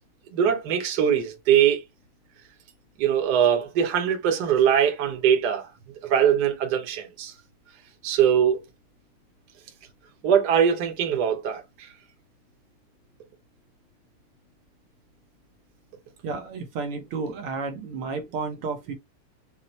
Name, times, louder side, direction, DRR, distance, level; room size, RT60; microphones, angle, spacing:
voice 1, 0.3-1.8 3.0-5.7 6.1-7.3 8.0-8.6 10.2-11.6, right 8 dB, 90° right, 0.8 m, -21 dB
voice 2, 16.2-18.9, right 4 dB, 70° right, 1.4 m, -32 dB
5.8 x 2.1 x 2.8 m
omnidirectional pair, 3.3 m